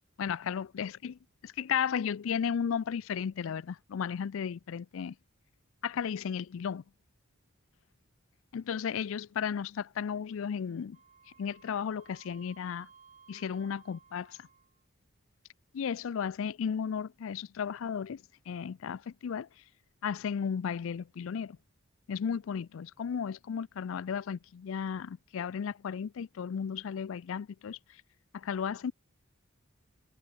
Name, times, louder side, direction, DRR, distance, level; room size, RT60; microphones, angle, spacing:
voice 1, 0.2-1.2 1.4-5.1 5.8-6.8 8.5-11.0 11.4-12.9 13.3-14.5 15.7-19.5 20.0-21.6 22.1-27.8 28.3-28.9, left 7 dB, 70° left, 0.4 m, -34 dB
Wind instrument woodwind instrument, 10.9-14.8, right 6 dB, 35° right, 1.8 m, -59 dB
head